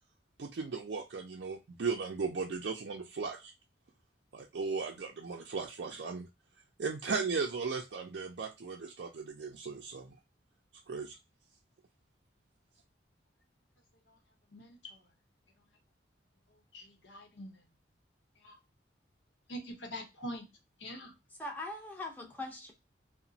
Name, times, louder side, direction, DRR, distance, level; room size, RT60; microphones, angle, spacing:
voice 1, 0.4-3.5 4.3-6.3 6.8-10.1 10.9-11.2, right 4 dB, 65° right, 0.4 m, -36 dB
voice 2, 14.5-15.0 16.7-17.5 18.4-18.6 19.5-20.5 20.8-21.1, equal, 75° left, 0.9 m, -44 dB
voice 3, 21.3-22.7, left 2 dB, 10° left, 0.6 m, -41 dB
2.9 x 2.1 x 2.6 m
head